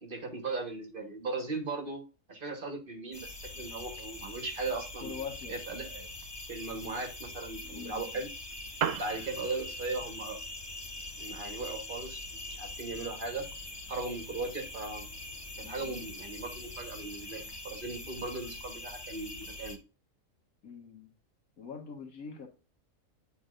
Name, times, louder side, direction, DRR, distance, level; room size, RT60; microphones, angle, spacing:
voice 1, 0.0-2.0 2.3-5.2 5.5-6.1 6.5-8.3 9.0-10.4 11.2-13.5 13.9-15.1 15.6-19.8, right 3 dB, 40° right, 1.3 m, -38 dB
sound 1, 3.1-19.8, left 2 dB, 20° left, 0.8 m, -43 dB
voice 2, 5.0-5.6 7.6-8.2 15.6-16.0 20.6-21.1 21.6-22.5, left 6 dB, 90° left, 1.9 m, -44 dB
Piano, 8.5-17.5, right 8 dB, 70° right, 1.0 m, -44 dB
9.6 x 4.0 x 2.5 m
omnidirectional pair, 1.4 m